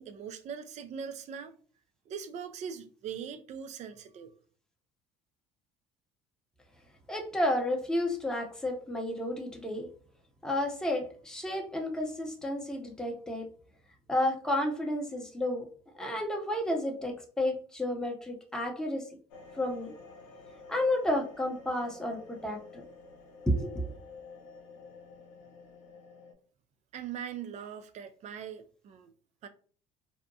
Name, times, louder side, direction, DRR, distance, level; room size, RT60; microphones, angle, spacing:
voice 1, 0.0-1.5 2.1-4.3 26.9-29.1 29.4-29.5, right 7 dB, 50° right, 0.4 m, -41 dB
voice 2, 7.1-9.9 10.4-13.5 14.1-15.7 16.0-19.1 19.5-19.9 20.7-22.8 23.5-23.9, left 1 dB, 5° left, 0.7 m, -31 dB
sound 1, 19.3-26.3, left 4 dB, 80° left, 0.6 m, -51 dB
2.7 x 2.1 x 2.6 m
hypercardioid pair, 70°, 16 cm